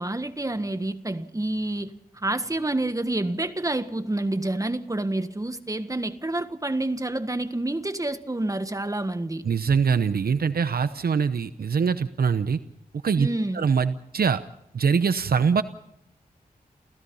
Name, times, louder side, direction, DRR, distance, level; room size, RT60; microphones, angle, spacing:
voice 1, 0.0-9.4 13.2-13.7, right 2 dB, 20° right, 1.6 m, -28 dB
voice 2, 9.4-12.6 13.0-13.3 13.5-14.4 14.7-15.6, right 6 dB, 80° right, 0.8 m, -23 dB
29.5 x 16.0 x 5.6 m
wide cardioid pair, 70°, 16 cm